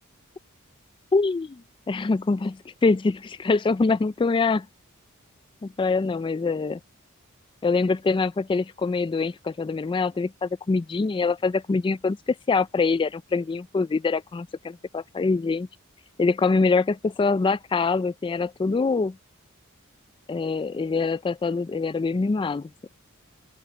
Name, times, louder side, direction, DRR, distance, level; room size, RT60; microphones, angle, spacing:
voice 1, 1.1-1.6 1.9-4.7 5.6-6.8 7.6-15.7 16.2-19.2 20.3-22.7, left 4 dB, 25° left, 0.3 m, -24 dB
open air
head